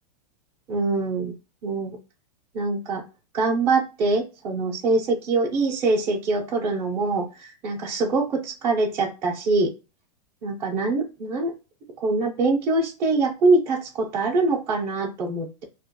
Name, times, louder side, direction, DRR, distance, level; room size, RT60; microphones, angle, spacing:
voice 1, 0.7-1.3 1.6-2.0 2.5-3.0 3.3-9.7 10.4-11.5 12.0-15.6, right 3 dB, 10° right, -5 dB, 0.5 m, -24 dB
2.9 x 2.2 x 2.7 m, 0.29 s
supercardioid pair, 180°, 21 cm